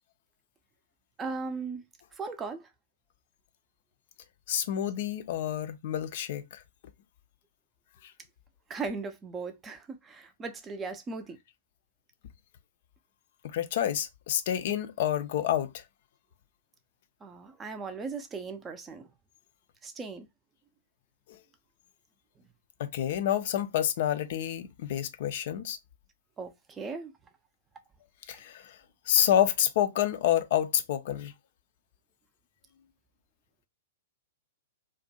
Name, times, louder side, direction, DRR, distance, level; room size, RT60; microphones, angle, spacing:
voice 1, 1.2-1.8 2.2-2.6 8.7-11.4 17.2-19.0 19.8-20.3 26.4-26.5 26.8-27.1, right 4 dB, 20° right, 0.4 m, -37 dB
voice 2, 4.5-6.6 8.0-8.1 13.4-15.8 22.8-25.8 28.3-28.8 29.1-31.3, left 10 dB, 50° left, 0.3 m, -28 dB
2.5 x 2.1 x 2.7 m
figure-of-eight pair, 105°, 0 cm